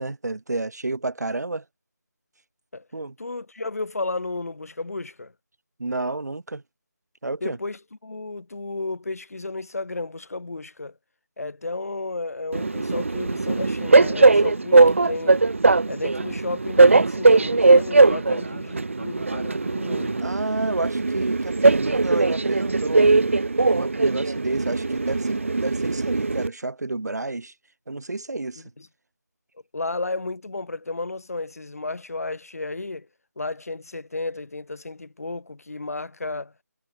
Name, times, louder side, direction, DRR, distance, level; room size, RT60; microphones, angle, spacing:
voice 1, 0.0-1.6 2.9-3.1 5.8-6.6 7.2-7.6 20.2-27.5 27.9-28.6, right 2 dB, 70° right, 2.4 m, -30 dB
voice 2, 3.2-5.3 7.4-10.9 11.4-15.4 15.9-20.3 28.8-28.9 29.7-33.1 33.4-36.5, left 3 dB, 55° left, 2.4 m, -33 dB
Train, 12.5-26.5, right 3 dB, 45° right, 1.0 m, -19 dB
figure-of-eight pair, 175°, 9 cm